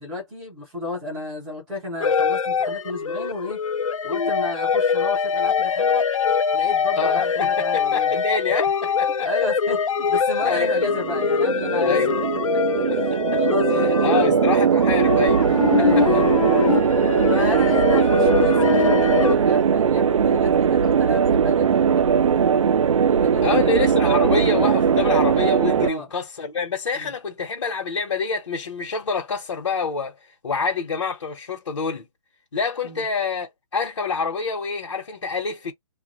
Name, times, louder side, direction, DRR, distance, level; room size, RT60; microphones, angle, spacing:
voice 1, 0.0-3.6 4.0-6.0 6.5-8.2 9.2-12.1 12.5-12.6 12.9-14.0 15.7-16.3 16.7-16.8 17.3-22.0 23.0-23.7 25.8-26.1 26.9-27.1 32.8-33.0, left 3 dB, ahead, 0.4 m, -32 dB
sound 1, 2.0-19.3, left 6 dB, 80° left, 0.6 m, -23 dB
voice 2, 7.0-9.3 10.4-10.7 11.8-12.1 12.9-13.4 14.0-15.6 16.0-16.1 17.4-17.5 18.0-18.1 23.4-30.2 30.4-32.1 32.5-35.7, left 5 dB, 55° left, 1.1 m, -27 dB
sound 2, 10.4-25.9, right 7 dB, 75° right, 0.4 m, -20 dB
2.4 x 2.2 x 3.0 m
hypercardioid pair, 175°, 17 cm